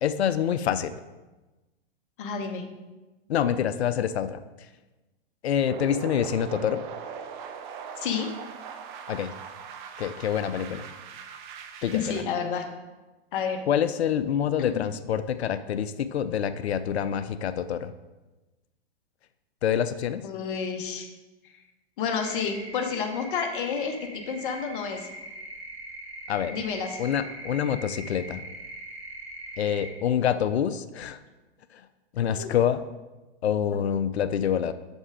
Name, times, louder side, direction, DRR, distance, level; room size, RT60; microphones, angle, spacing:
voice 1, 0.0-1.0 3.3-4.4 5.4-6.8 9.1-9.3 10.0-10.8 11.8-12.2 13.7-17.9 19.6-20.2 26.3-26.6 27.0-28.4 29.6-31.2 31.7-31.8 32.1-32.8 33.4-34.7, left 9 dB, 90° left, 13 dB, 0.5 m, -26 dB
voice 2, 2.2-2.6 8.0-8.3 11.9-12.6 13.3-13.6 14.6-14.9 20.2-21.1 22.0-25.1 26.5-27.0 32.3-32.5, left 6 dB, 55° left, 4 dB, 1.1 m, -30 dB
sound 1, 5.7-12.2, right 7 dB, 50° right, 0.8 m, -40 dB
sound 2, 22.2-29.9, right 2 dB, 70° right, 2.1 m, -42 dB
6.1 x 5.3 x 4.8 m, 1.1 s
hypercardioid pair, 120°, 31 cm